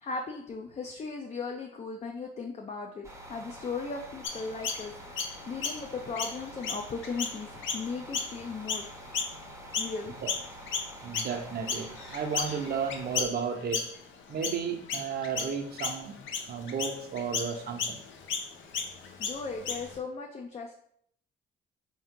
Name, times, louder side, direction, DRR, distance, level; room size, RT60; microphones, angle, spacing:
voice 1, 0.0-9.0 9.8-10.1 19.2-20.8, left 4 dB, 35° left, 2 dB, 0.4 m, -37 dB
sound 1, 3.0-13.3, right 1 dB, 15° right, 0.7 m, -47 dB
Chirp tweet, 4.2-10.0 10.3-20.0, left 5 dB, 80° left, 0.6 m, -35 dB
voice 2, 11.0-13.9 14.3-16.2 16.5-18.0, right 6 dB, 50° right, 5 dB, 0.6 m, -33 dB
3.5 x 2.8 x 3.6 m, 0.67 s
cardioid pair, 90°, 20 cm